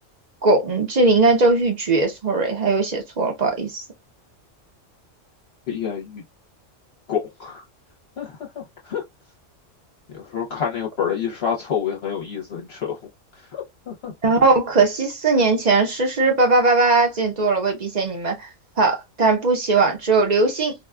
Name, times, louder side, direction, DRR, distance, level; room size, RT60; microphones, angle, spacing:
voice 1, 0.4-3.8 14.2-18.5 18.8-20.7, right 3 dB, 40° right, 0.8 m, -19 dB
voice 2, 5.7-6.2 7.1-7.6 8.2-9.0 10.1-13.0 13.5-14.3, left 8 dB, 60° left, 0.9 m, -28 dB
4.2 x 2.2 x 2.3 m
omnidirectional pair, 1.3 m